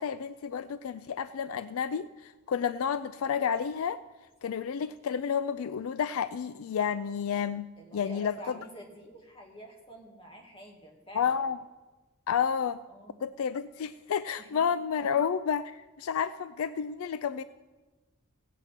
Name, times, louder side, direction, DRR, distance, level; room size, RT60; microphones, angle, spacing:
voice 1, 0.0-4.0 4.4-7.7 7.9-8.6 11.1-11.6 12.3-12.8 13.2-17.4, left 7 dB, 70° left, 14 dB, 0.4 m, -30 dB
voice 2, 7.8-11.4 12.9-13.2 14.4-14.6, right 1 dB, 25° left, 0 dB, 2.2 m, -48 dB
16.5 x 8.1 x 5.8 m, 1.2 s
head